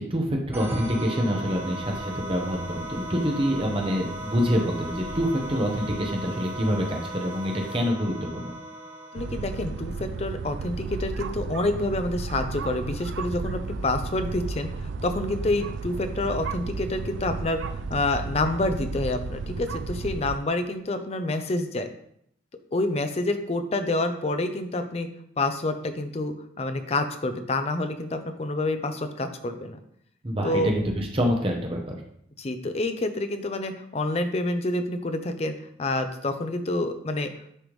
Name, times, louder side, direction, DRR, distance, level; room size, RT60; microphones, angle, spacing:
voice 1, 0.0-8.5 30.2-32.0, equal, 30° right, 1 dB, 0.9 m, -26 dB
sound 1, 0.5-10.0, right 1 dB, 10° right, 0.6 m, -37 dB
windy spring in the woods - front, 1.4-7.9, left 1 dB, 85° left, 1.3 m, -46 dB
voice 2, 9.1-14.7 15.0-21.9 22.7-25.1 25.4-29.8 30.4-30.7 32.4-37.3, left 2 dB, 35° left, 8 dB, 0.5 m, -28 dB
sound 2, 9.2-20.4, right 4 dB, 75° right, 0.3 m, -33 dB
9.9 x 3.4 x 3.1 m, 0.71 s
head